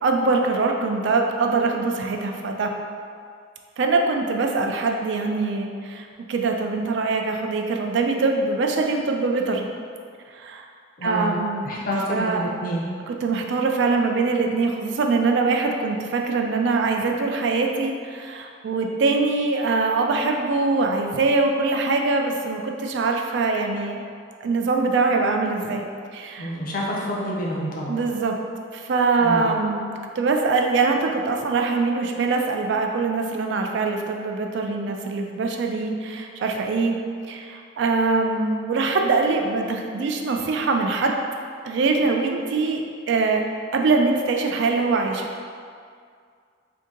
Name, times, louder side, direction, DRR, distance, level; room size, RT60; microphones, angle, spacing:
voice 1, 0.0-2.7 3.8-9.7 10.3-10.6 11.0-11.8 12.1-12.5 13.1-24.0 24.4-25.9 26.1-26.5 27.9-28.4 28.7-37.0 37.3-41.2 41.6-43.5 43.7-45.3, right 3 dB, 65° right, 3 dB, 0.3 m, -23 dB
voice 2, 11.0-11.4 11.6-12.8 26.4-28.0 29.2-29.5, equal, 50° left, -3 dB, 0.6 m, -27 dB
2.7 x 2.6 x 3.7 m, 2.2 s
head